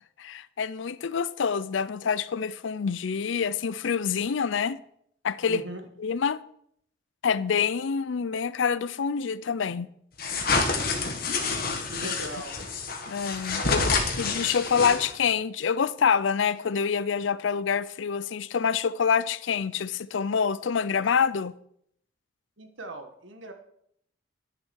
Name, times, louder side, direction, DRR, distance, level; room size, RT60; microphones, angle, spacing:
voice 1, 0.2-4.8 5.2-5.6 6.0-6.4 7.2-9.9 13.1-13.9 14.2-21.5, left 6 dB, 75° left, 0.5 m, -26 dB
voice 2, 5.5-5.8 11.9-12.6 13.6-14.2 22.6-23.5, right 3 dB, 80° right, 1.6 m, -39 dB
sound 1, 10.2-15.3, left 4 dB, 50° left, 1.6 m, -28 dB
11.0 x 6.8 x 6.3 m
head